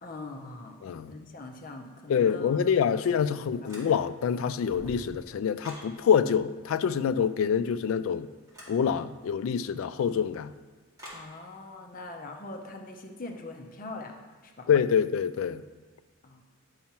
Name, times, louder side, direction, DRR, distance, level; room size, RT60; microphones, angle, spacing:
voice 1, 0.0-2.8 11.1-14.2 14.4-14.7 16.2-16.4, left 2 dB, 40° left, 0.6 m, -42 dB
voice 2, 0.8-1.1 2.1-8.3 8.7-10.5 14.7-15.6, left 7 dB, 75° left, 0.3 m, -26 dB
sound 1, 3.7-4.2 4.6-5.9 8.5-8.8 11.0-11.3, equal, 15° right, 2.0 m, -46 dB
10.5 x 5.6 x 2.9 m
head